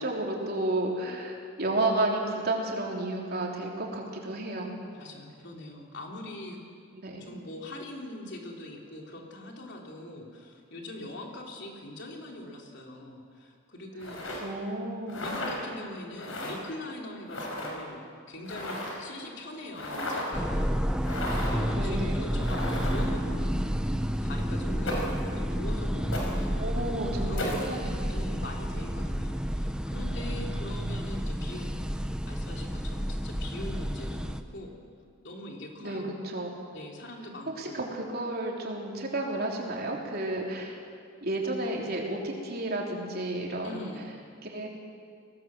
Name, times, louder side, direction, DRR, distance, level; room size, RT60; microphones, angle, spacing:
voice 1, 0.0-4.7 6.9-7.4 14.4-15.4 21.7-22.2 26.5-28.2 35.8-36.5 37.6-40.7 41.2-43.9 44.4-44.7, right 2 dB, 50° right, -1 dB, 3.6 m, -32 dB
voice 2, 4.9-6.7 7.2-14.5 15.1-23.7 24.2-26.8 27.2-27.5 27.8-31.7 32.3-34.8 35.2-36.2 36.7-37.8 43.6-44.1, left 1 dB, 60° left, 0 dB, 3.3 m, -42 dB
sound 1, 14.0-14.4 15.1-15.6 16.2-16.5 17.3-17.7 18.4-19.1 19.7-20.3 21.0-21.6 22.4-23.1 24.9-25.2 26.1-26.3 27.4-27.6, left 1 dB, 75° left, 5.2 m, -34 dB
sound 2, 20.3-34.4, equal, 5° right, 0.8 m, -30 dB
23.0 x 18.0 x 7.6 m, 2.2 s
head